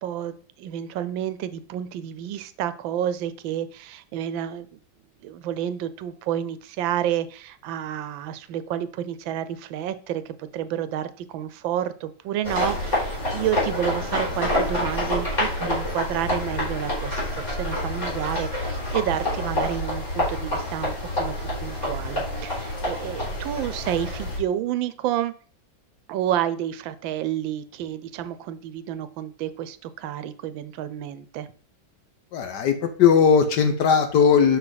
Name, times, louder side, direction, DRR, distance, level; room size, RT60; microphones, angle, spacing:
voice 1, 0.0-4.8 5.2-25.3 26.1-31.5, right 11 dB, 85° right, 13 dB, 1.4 m, -30 dB
sound 1, 12.4-24.4, left 1 dB, 40° left, 4.1 m, -27 dB
voice 2, 32.3-34.6, left 6 dB, 65° left, 7 dB, 1.4 m, -18 dB
6.2 x 5.7 x 3.9 m, 0.43 s
omnidirectional pair, 2.1 m